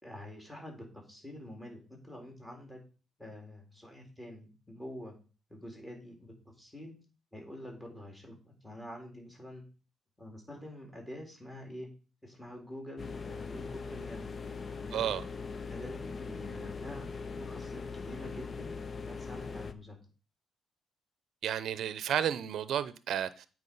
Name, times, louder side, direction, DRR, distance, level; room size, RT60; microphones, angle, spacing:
voice 1, 0.0-2.8 3.2-5.2 5.5-7.0 7.3-9.6 10.2-11.9 12.2-14.3 14.8-15.1 15.7-17.1 17.4-20.0, left 1 dB, 10° left, 3.7 m, -46 dB
sound 1, 13.0-19.7, left 4 dB, 40° left, 0.7 m, -41 dB
voice 2, 14.9-15.2 21.4-23.5, right 10 dB, 70° right, 0.6 m, -32 dB
8.5 x 4.6 x 5.4 m
cardioid pair, 90°, 0 cm